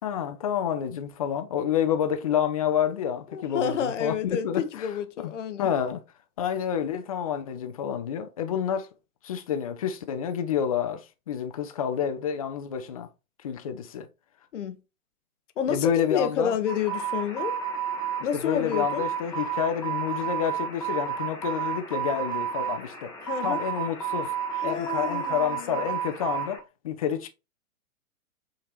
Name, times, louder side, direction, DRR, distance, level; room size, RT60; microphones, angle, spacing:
voice 1, 0.0-4.9 5.2-5.3 5.6-6.0 6.4-8.9 9.2-13.1 13.4-14.1 15.7-16.5 18.3-23.1 23.4-24.3 24.6-27.3, left 9 dB, 25° left, 0.5 m, -29 dB
voice 2, 3.3-5.7 14.5-14.8 15.6-17.6 18.2-19.0 23.2-23.6 24.6-25.8, left 7 dB, 55° left, 0.7 m, -29 dB
sound 1, 16.7-26.6, right 8 dB, 10° left, 0.8 m, -31 dB
6.0 x 2.9 x 3.0 m
figure-of-eight pair, 115°, 44 cm